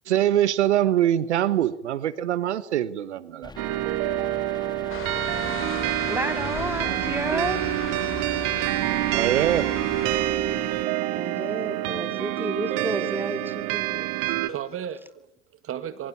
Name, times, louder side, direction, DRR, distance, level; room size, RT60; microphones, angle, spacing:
voice 1, 0.1-3.5 9.1-9.7, right 11 dB, 80° right, 1.3 m, -23 dB
sound 1, 3.4-10.9, left 2 dB, 10° left, 2.2 m, -42 dB
sound 2, 3.6-14.5, right 16 dB, 60° right, 2.0 m, -27 dB
sound 3, 4.9-10.2, left 7 dB, 35° left, 7.7 m, -37 dB
voice 2, 6.1-7.7 11.1-14.4, right 1 dB, 5° right, 3.4 m, -31 dB
voice 3, 14.1-16.1, right 9 dB, 40° right, 2.1 m, -36 dB
28.0 x 24.0 x 8.5 m
hypercardioid pair, 85°, 34 cm